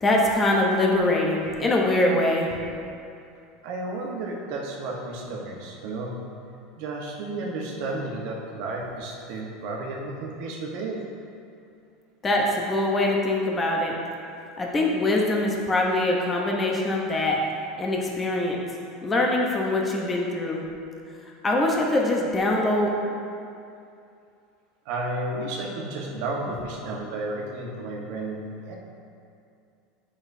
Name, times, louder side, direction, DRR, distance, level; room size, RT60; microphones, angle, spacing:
voice 1, 0.0-2.5 12.2-13.9 14.6-17.4 17.8-18.6 19.0-20.6 21.4-22.9, left 2 dB, 20° left, -1 dB, 0.8 m, -23 dB
voice 2, 3.6-6.1 6.8-11.0 24.8-28.8, right 2 dB, 65° right, -2 dB, 1.2 m, -32 dB
7.9 x 6.1 x 2.7 m, 2.5 s
supercardioid pair, 115°, 0 cm